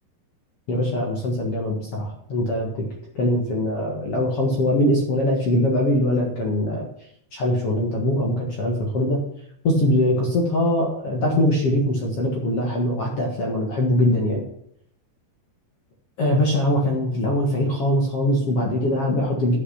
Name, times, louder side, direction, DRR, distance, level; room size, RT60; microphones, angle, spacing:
voice 1, 0.7-2.8 3.1-6.9 7.3-9.2 9.6-14.4 16.2-19.6, left 1 dB, 65° left, -1 dB, 1.4 m, -22 dB
10.0 x 7.3 x 5.7 m, 0.71 s
omnidirectional pair, 5.3 m